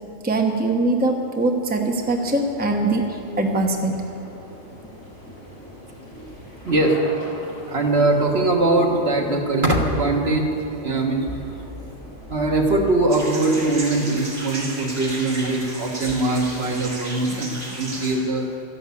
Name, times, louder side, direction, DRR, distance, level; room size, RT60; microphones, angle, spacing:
voice 1, 0.2-3.9, right 2 dB, 10° right, 2 dB, 0.9 m, -22 dB
sound 1, 1.9-13.7, left 1 dB, 90° left, 4.8 m, -42 dB
voice 2, 6.7-7.0 7.7-10.5 10.8-11.3 12.3-18.5, right 2 dB, 50° right, 1 dB, 1.7 m, -21 dB
sound 2, 13.1-18.1, right 1 dB, 75° right, 4.5 m, -34 dB
13.0 x 11.5 x 8.4 m, 2.9 s
omnidirectional pair, 1.3 m